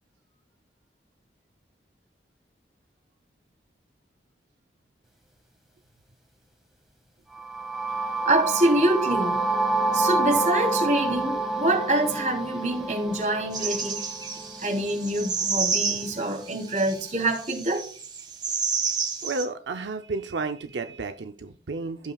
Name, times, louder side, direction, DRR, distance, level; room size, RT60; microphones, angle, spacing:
sound 1, 7.3-15.2, right 2 dB, ahead, 1.7 m, -28 dB
voice 1, 8.2-9.4 9.9-14.1 14.6-17.9, right 1 dB, 45° right, 3.2 m, -25 dB
sound 2, 13.5-19.4, right 5 dB, 25° right, 1.3 m, -30 dB
voice 2, 19.2-22.1, right 3 dB, 90° right, 0.6 m, -32 dB
16.5 x 5.6 x 2.3 m
head